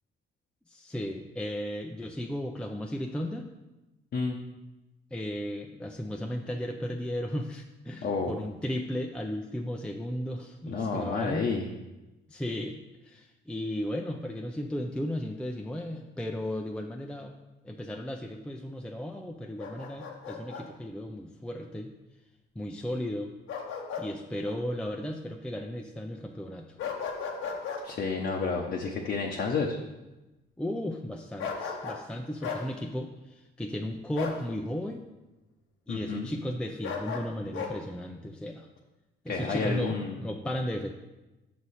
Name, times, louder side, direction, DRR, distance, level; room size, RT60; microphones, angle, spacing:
voice 1, 0.7-3.5 5.1-11.4 12.3-17.3 17.6-21.9 22.6-23.3 24.0-26.8 30.6-35.0 35.9-38.7 39.2-40.9, left 1 dB, 5° left, 2 dB, 0.5 m, -35 dB
voice 2, 8.0-8.3 10.7-11.7 27.8-29.8 35.9-36.3 39.3-40.2, left 4 dB, 55° left, -1 dB, 0.8 m, -30 dB
Bark, 19.6-20.7 23.5-24.1 24.4-24.6 26.8-27.8 31.4-32.1 32.4-32.6 34.1-34.4 36.8-37.7, left 6 dB, 85° left, 1.0 m, -35 dB
6.5 x 6.0 x 4.2 m, 1.0 s
cardioid pair, 90°, 20 cm